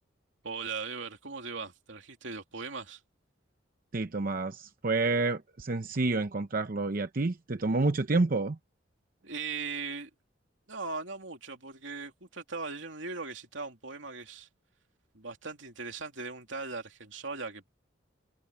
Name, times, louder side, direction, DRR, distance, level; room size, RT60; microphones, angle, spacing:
voice 1, 0.4-3.0 9.2-10.1 10.7-14.5 15.1-17.7, right 4 dB, 80° right, 2.9 m, -39 dB
voice 2, 3.9-8.6, right 3 dB, 50° right, 0.8 m, -29 dB
head